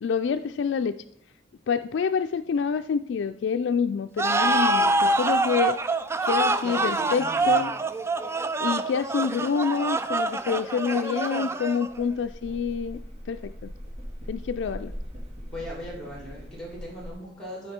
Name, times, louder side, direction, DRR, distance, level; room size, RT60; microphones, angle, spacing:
voice 1, 0.0-1.0 1.7-5.8 6.2-7.7 8.6-13.0 13.3-13.7 14.3-14.9, left 6 dB, 80° left, 9 dB, 0.3 m, -27 dB
sound 1, 4.2-12.0, right 2 dB, 15° right, 0.3 m, -25 dB
voice 2, 6.6-7.6 15.5-17.7, equal, 5° left, -2 dB, 2.6 m, -38 dB
sound 2, 11.9-17.1, equal, 35° right, 2.0 m, -40 dB
12.0 x 5.0 x 4.3 m, 0.71 s
head